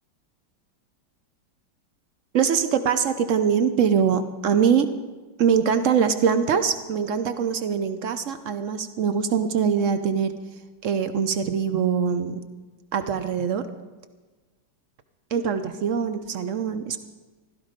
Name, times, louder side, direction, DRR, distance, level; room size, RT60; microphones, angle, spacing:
voice 1, 2.3-5.0 5.4-10.3 10.8-12.4 12.9-13.6 15.3-17.0, right 7 dB, 70° right, 10 dB, 0.7 m, -23 dB
15.5 x 12.5 x 5.1 m, 1.3 s
omnidirectional pair, 2.2 m